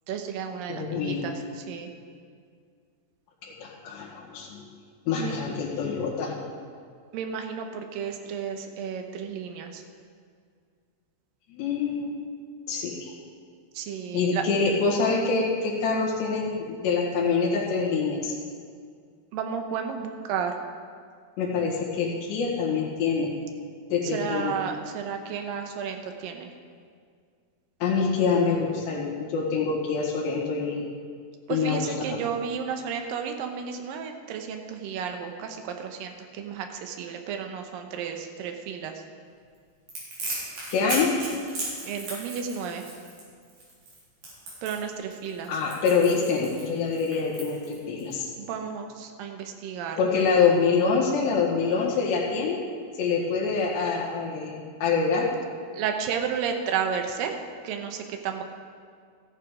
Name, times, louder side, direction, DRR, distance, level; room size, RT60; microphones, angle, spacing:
voice 1, 0.1-1.9 5.2-5.4 7.1-9.8 13.8-14.4 19.3-20.6 24.0-26.5 31.5-38.9 41.8-42.8 44.6-45.5 48.4-50.0 55.7-57.4 57.6-58.4, right 7 dB, 75° right, 4 dB, 2.2 m, -32 dB
voice 2, 0.7-1.2 3.6-4.7 5.1-6.4 11.5-12.1 12.7-13.1 14.1-18.3 21.4-23.3 23.9-24.6 27.8-30.8 31.5-32.2 40.7-41.1 45.5-48.3 50.0-52.6 53.0-55.3, left 5 dB, 85° left, -4 dB, 4.0 m, -25 dB
Crackle, 39.9-48.1, right 2 dB, 50° right, 5.1 m, -36 dB
14.0 x 11.0 x 4.9 m, 2.1 s
omnidirectional pair, 4.9 m